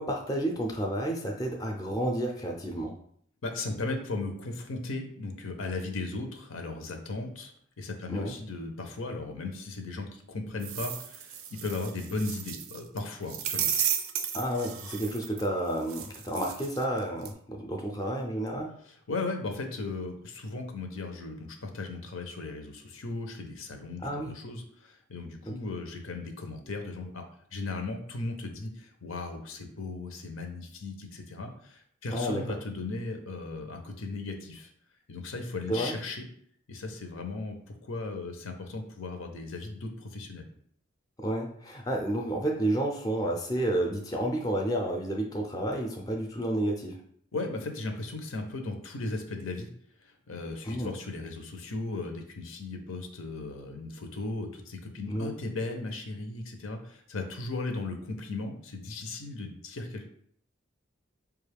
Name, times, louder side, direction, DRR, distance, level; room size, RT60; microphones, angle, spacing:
voice 1, 0.0-2.9 8.1-8.3 14.3-18.7 24.0-24.3 25.5-25.6 32.1-32.4 35.7-35.9 41.2-47.0 50.6-50.9 55.1-55.3, right 1 dB, 20° left, 1 dB, 0.4 m, -30 dB
voice 2, 3.4-7.5 7.8-13.7 18.9-27.2 27.5-34.7 35.1-36.2 36.7-40.4 47.3-49.7 50.0-60.1, left 3 dB, 85° left, 4 dB, 0.6 m, -36 dB
sound 1, 10.6-13.0 13.3-15.5 15.9-17.0 17.3-17.4, right 9 dB, 90° right, 0.4 m, -33 dB
4.8 x 2.3 x 3.3 m, 0.63 s
head